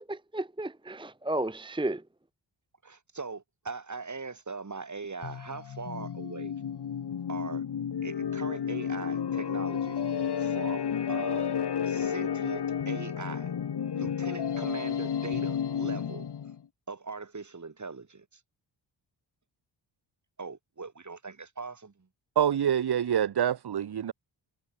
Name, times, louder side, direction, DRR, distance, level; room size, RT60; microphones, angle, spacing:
voice 1, 0.0-2.0, right 1 dB, 10° right, 1.2 m, -33 dB
voice 2, 2.8-6.5 7.3-7.6 8.0-10.0 10.4-11.5 11.9-13.5 13.9-16.3 16.9-18.4 20.4-22.1, right 4 dB, 40° right, 5.6 m, -40 dB
sound 1, 5.2-16.6, left 8 dB, 60° left, 1.9 m, -32 dB
voice 3, 22.4-24.1, right 9 dB, 55° right, 1.2 m, -26 dB
cardioid pair, 65°, 46 cm